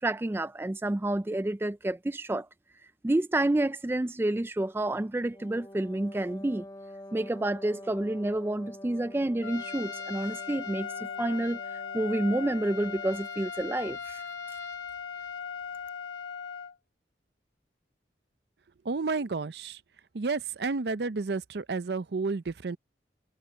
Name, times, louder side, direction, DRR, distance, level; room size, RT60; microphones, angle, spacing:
voice 1, 0.0-2.5 3.0-6.6 7.1-11.6 11.9-14.2, right 1 dB, 15° right, 0.3 m, -29 dB
Wind instrument woodwind instrument, 5.3-13.5, left 1 dB, 20° left, 1.9 m, -47 dB
Trumpet, 9.4-16.7, left 6 dB, 70° left, 2.4 m, -38 dB
voice 2, 18.8-19.8 20.1-22.8, right 4 dB, 65° right, 0.6 m, -31 dB
head